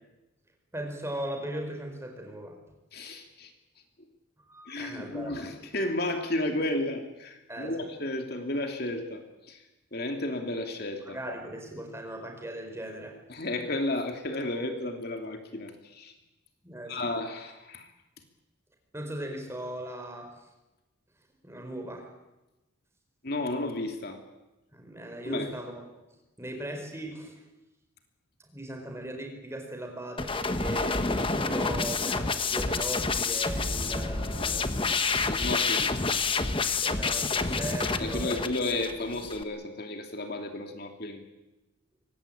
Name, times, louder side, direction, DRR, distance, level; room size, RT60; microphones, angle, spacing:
voice 1, 0.7-2.6 4.4-5.5 7.5-7.9 11.0-13.2 16.6-17.1 18.9-20.4 21.4-22.1 24.7-25.8 26.4-27.4 28.4-34.9 36.7-38.5, right 1 dB, 15° right, 3 dB, 4.5 m, -38 dB
voice 2, 2.9-3.5 4.7-9.6 9.9-11.2 13.3-16.1 16.9-17.9 23.2-24.2 25.3-25.5 35.3-36.0 38.0-41.2, left 2 dB, 50° left, 4 dB, 2.8 m, -33 dB
sound 1, 30.2-39.4, left 4 dB, 25° left, 1.1 m, -28 dB
24.0 x 19.5 x 8.7 m, 1.0 s
head